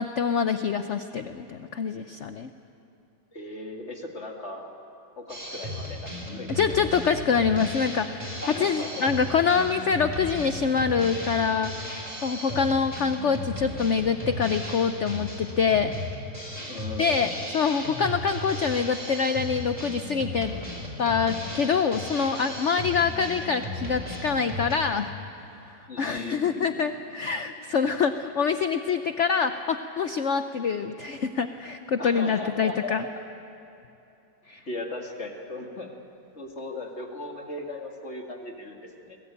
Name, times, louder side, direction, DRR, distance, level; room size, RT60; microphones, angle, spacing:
voice 1, 0.0-2.5 6.5-11.7 12.2-15.9 17.0-20.5 21.0-25.1 26.0-33.0 34.5-34.6, left 6 dB, 75° left, 9 dB, 0.6 m, -25 dB
voice 2, 3.3-4.6 5.2-6.6 7.1-7.6 8.4-9.1 12.5-12.7 16.7-17.4 23.0-23.3 25.9-26.8 32.0-33.0 34.7-35.9 36.3-39.2, left 2 dB, 35° left, 1 dB, 2.3 m, -37 dB
Drum kit, 5.3-24.7, left 1 dB, 15° right, 3.9 m, -36 dB
23.0 x 20.0 x 8.8 m, 2.8 s
omnidirectional pair, 2.2 m